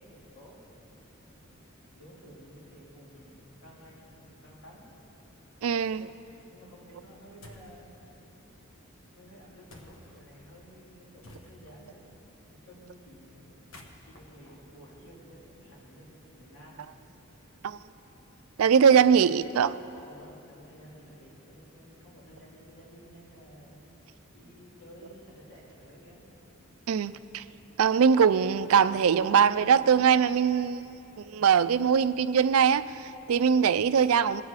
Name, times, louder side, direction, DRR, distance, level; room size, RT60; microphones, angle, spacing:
voice 1, 0.0-1.4 1.9-4.8 6.5-7.9 9.1-12.1 12.5-13.6 14.0-16.8 20.0-23.8 24.3-26.2, equal, 85° left, 3.5 m, -53 dB
voice 2, 5.6-6.1 17.6-17.8 18.6-19.7 26.9-27.4 27.8-30.8 31.2-34.4, right 7 dB, 80° right, 0.4 m, -22 dB
sound 1, 7.4-7.8 9.7-10.2 11.2-11.9 13.5-15.5, left 1 dB, 70° left, 1.4 m, -52 dB
22.0 x 8.2 x 4.8 m
head